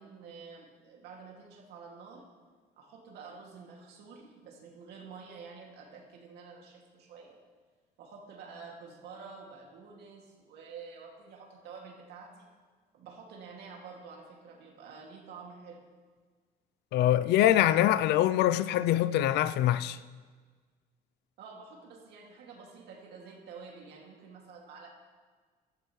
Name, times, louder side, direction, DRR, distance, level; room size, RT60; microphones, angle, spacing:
voice 1, 0.0-2.2 2.8-7.4 8.0-12.5 12.9-15.8 21.4-24.9, right 5 dB, 80° right, 2.5 m, -49 dB
voice 2, 16.9-20.0, left 12 dB, 80° left, 0.5 m, -24 dB
16.0 x 12.5 x 3.3 m
cardioid pair, 110°, 17 cm